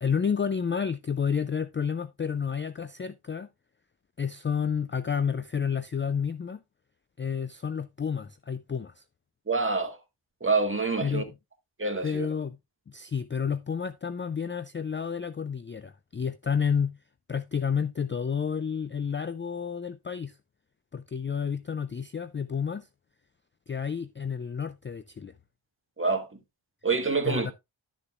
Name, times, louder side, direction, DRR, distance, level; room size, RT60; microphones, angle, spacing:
voice 1, 0.0-3.5 4.2-6.6 7.2-9.0 11.0-11.3 12.0-12.6 12.9-17.0 17.3-20.4 20.9-22.9 23.7-25.3 27.2-27.5, left 6 dB, 25° left, 0.4 m, -30 dB
voice 2, 9.5-10.0 10.4-11.2 11.8-12.3 26.0-26.4 26.8-27.5, right 4 dB, 25° right, 1.6 m, -26 dB
11.5 x 6.8 x 2.4 m
wide cardioid pair, 90°, 47 cm